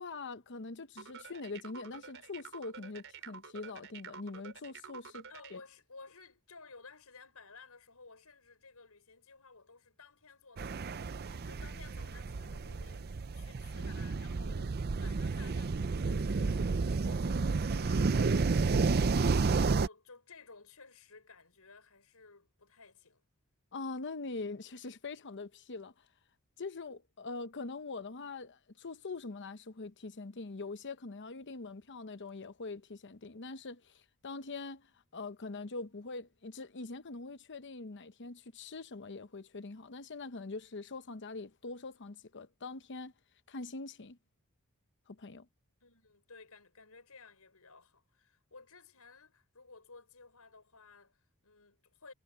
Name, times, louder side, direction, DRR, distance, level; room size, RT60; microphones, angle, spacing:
voice 1, 0.0-5.6 23.7-25.9 26.6-33.9 34.2-34.9 35.1-43.1 43.5-44.2 45.1-45.5, left 3 dB, 55° left, 0.9 m, -43 dB
sound 1, 1.0-5.6, right 6 dB, 60° right, 4.8 m, -49 dB
voice 2, 5.3-23.2 45.8-52.1, left 4 dB, 80° left, 5.9 m, -56 dB
sound 2, 10.6-19.9, right 4 dB, 45° right, 0.5 m, -31 dB
head